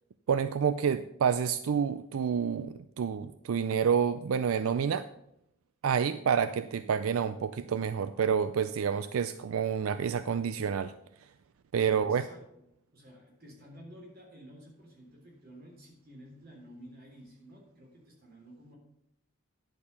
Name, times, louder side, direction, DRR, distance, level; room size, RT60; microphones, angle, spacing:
voice 1, 0.3-5.1 5.8-10.9 11.7-12.3, right 7 dB, 85° right, 13 dB, 0.4 m, -28 dB
voice 2, 11.8-12.6 12.9-18.8, equal, 45° right, 0 dB, 3.3 m, -52 dB
10.5 x 6.7 x 5.6 m, 0.80 s
head